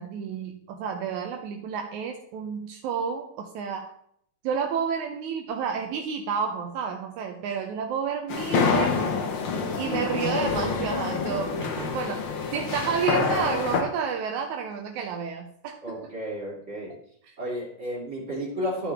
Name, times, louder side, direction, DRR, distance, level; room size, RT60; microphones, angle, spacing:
voice 1, 0.0-4.0 4.4-9.1 9.8-15.8, right 6 dB, 80° right, 3 dB, 1.7 m, -30 dB
sound 1, 8.3-13.8, left 5 dB, 80° left, 1.1 m, -27 dB
voice 2, 9.5-9.9 11.6-11.9 15.8-16.9 17.4-18.9, equal, 20° right, -4 dB, 2.6 m, -33 dB
13.0 x 5.8 x 3.5 m, 0.68 s
omnidirectional pair, 4.3 m